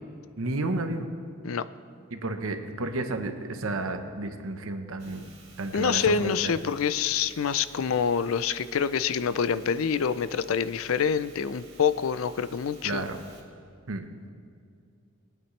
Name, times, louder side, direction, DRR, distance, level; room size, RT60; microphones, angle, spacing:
voice 1, 0.4-1.1 2.1-5.3 5.6-6.5 12.8-13.2 13.9-14.3, right 2 dB, 80° right, 6 dB, 1.0 m, -32 dB
sound 1, 5.0-13.4, right 3 dB, 30° right, 2.1 m, -53 dB
voice 2, 5.7-13.1, left 6 dB, 75° left, 15 dB, 0.4 m, -26 dB
20.5 x 9.0 x 3.2 m, 2.3 s
head